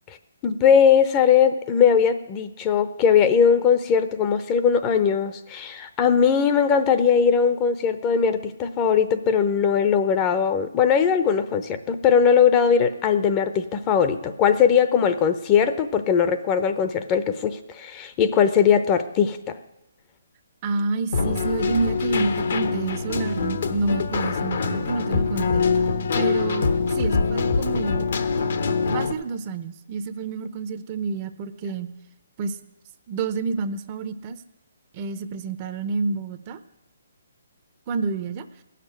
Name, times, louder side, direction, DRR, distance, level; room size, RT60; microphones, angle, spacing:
voice 1, 0.4-19.4, left 7 dB, 25° left, 10 dB, 0.8 m, -20 dB
voice 2, 20.6-25.6 26.2-28.1 28.6-31.9 32.4-32.6 33.1-34.4 34.9-36.6 37.9-38.5, right 4 dB, 30° right, 11 dB, 0.8 m, -29 dB
Keyboard (musical), 21.1-29.1, left 4 dB, 60° left, 1.1 m, -24 dB
16.5 x 6.7 x 9.9 m, 0.91 s
hypercardioid pair, 150°, 0 cm